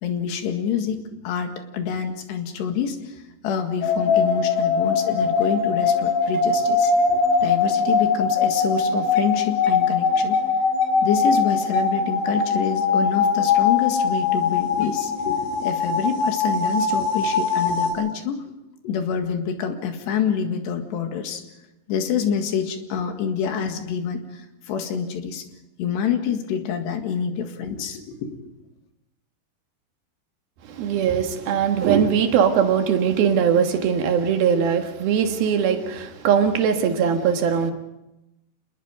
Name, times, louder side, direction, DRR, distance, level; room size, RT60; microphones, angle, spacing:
voice 1, 0.0-10.4 11.0-18.4 18.8-21.4 21.9-25.4 25.8-28.4, left 7 dB, 80° left, 5 dB, 4.0 m, -27 dB
sound 1, 3.8-17.9, left 5 dB, 60° left, 6.5 m, -21 dB
voice 2, 30.6-37.7, right 7 dB, 65° right, 5 dB, 3.2 m, -20 dB
27.5 x 21.0 x 5.3 m, 0.93 s
omnidirectional pair, 5.0 m